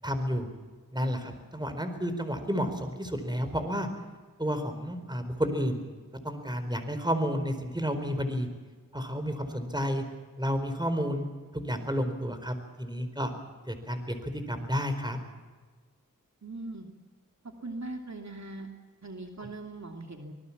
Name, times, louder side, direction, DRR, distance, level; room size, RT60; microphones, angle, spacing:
voice 1, 0.0-0.5 0.9-3.9 4.4-5.8 6.2-8.5 8.9-10.0 10.4-11.3 11.5-13.3 13.7-15.2, equal, 15° right, 8 dB, 4.5 m, -31 dB
voice 2, 16.4-16.9 17.4-18.7 19.0-20.3, right 2 dB, 55° right, 3 dB, 2.7 m, -40 dB
25.5 x 19.5 x 7.3 m, 1.4 s
wide cardioid pair, 50°, 33 cm